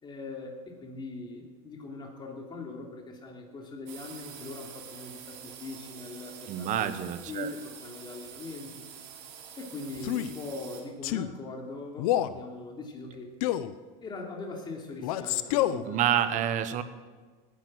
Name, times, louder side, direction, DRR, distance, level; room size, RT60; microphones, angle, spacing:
voice 1, 0.0-6.9 7.3-8.9 9.6-13.3 14.0-16.1, left 3 dB, 25° left, 1 dB, 3.1 m, -41 dB
sound 1, 3.9-10.8, right 8 dB, 70° right, 3.2 m, -47 dB
voice 2, 6.5-7.5 15.9-16.8, right 10 dB, 45° right, 12 dB, 1.1 m, -28 dB
Male speech man speaking, 10.0-10.3 11.0-11.3 12.0-12.4 13.4-13.7 15.0-15.8, left 13 dB, 80° left, 0.8 m, -28 dB
19.0 x 10.0 x 6.4 m, 1.4 s
supercardioid pair, 135°, 18 cm